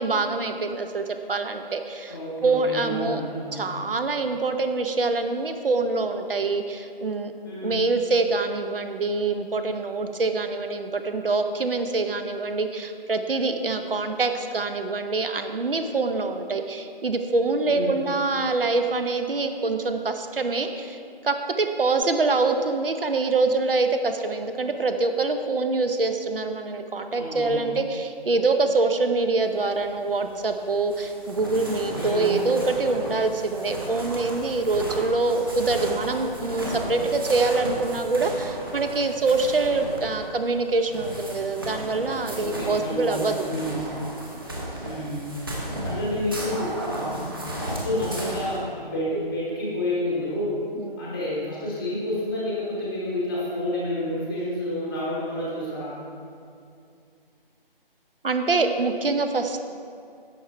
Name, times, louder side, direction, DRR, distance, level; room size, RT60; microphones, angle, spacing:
voice 1, 0.0-3.2 3.5-7.3 7.6-43.4 50.8-51.0 58.2-59.7, right 3 dB, 70° right, 7 dB, 0.8 m, -25 dB
voice 2, 2.1-3.6 7.4-7.8 17.7-17.9 27.1-27.7 31.9-32.4 42.4-44.0 44.8-45.4 45.8-50.6 51.0-55.9, left 1 dB, 5° left, -7 dB, 0.9 m, -30 dB
sound 1, 29.4-48.6, right 1 dB, 25° right, 1.0 m, -34 dB
11.0 x 7.3 x 4.6 m, 2.4 s
figure-of-eight pair, 175°, 29 cm